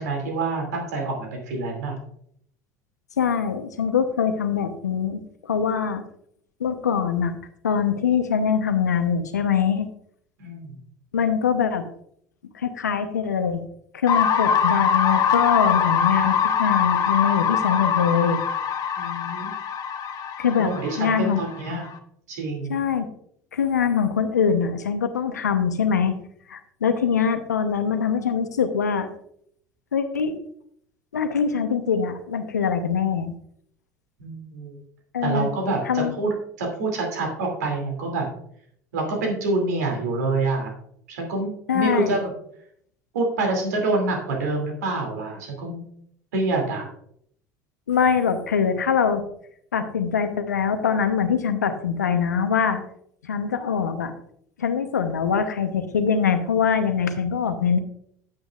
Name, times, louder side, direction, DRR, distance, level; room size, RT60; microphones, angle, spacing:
voice 1, 0.0-2.0 10.4-10.8 18.9-19.5 20.6-21.9 22.3-22.8 34.2-34.8 35.2-38.3 38.9-40.7 41.1-42.3 43.1-45.8 46.3-46.9, right 3 dB, 80° right, 1 dB, 2.7 m, -26 dB
voice 2, 3.2-6.0 6.6-7.3 7.6-9.9 11.1-11.8 12.5-13.6 13.9-18.4 20.4-20.7 21.0-21.4 22.7-23.1 23.5-26.1 26.5-29.1 29.9-30.4 31.1-33.3 35.1-35.5 35.8-36.1 41.7-42.2 47.9-49.2 49.7-52.8 53.2-54.1 54.6-57.8, left 7 dB, 90° left, 9 dB, 0.9 m, -23 dB
sound 1, 14.1-21.9, left 7 dB, 45° left, 1.0 m, -23 dB
9.9 x 9.1 x 2.4 m, 0.68 s
hypercardioid pair, 75°, 9 cm